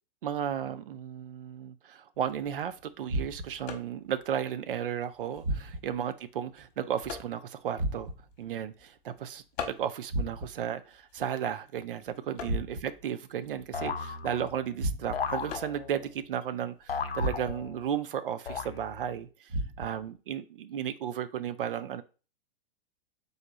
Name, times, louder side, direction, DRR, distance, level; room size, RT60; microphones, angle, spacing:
voice 1, 0.2-8.1 8.4-19.5 19.8-22.0, right 9 dB, 65° right, 12 dB, 0.6 m, -34 dB
sound 1, 2.1-17.7, left 7 dB, 45° left, 1.2 m, -48 dB
sound 2, 3.1-3.7 5.4-6.1 7.8-8.4 10.1-10.7 12.4-13.1 14.8-15.4 17.2-17.8 19.5-20.1, right 1 dB, 50° right, 1.3 m, -34 dB
sound 3, 13.7-14.7 15.1-16.1 16.9-17.9 18.5-19.2, left 5 dB, 90° left, 0.6 m, -36 dB
4.1 x 3.3 x 3.8 m, 0.34 s
figure-of-eight pair, 110°, 29 cm